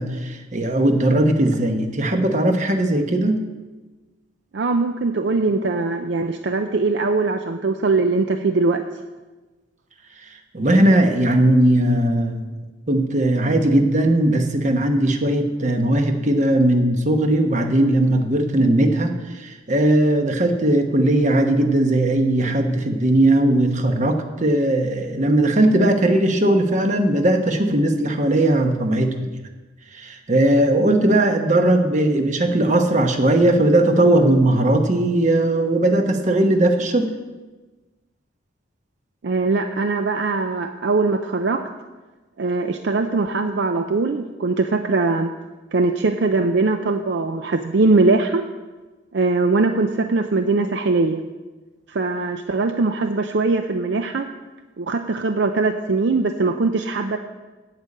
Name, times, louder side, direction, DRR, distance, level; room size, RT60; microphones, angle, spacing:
voice 1, 0.0-3.4 10.5-12.5 12.9-29.3 29.9-37.1, right 1 dB, 40° right, 5 dB, 1.0 m, -18 dB
voice 2, 4.5-8.8 39.2-41.7 42.4-45.3 45.7-48.4 49.1-51.2 51.9-54.3 54.8-57.2, right 3 dB, 65° right, 7 dB, 0.5 m, -21 dB
9.0 x 6.7 x 8.5 m, 1.2 s
head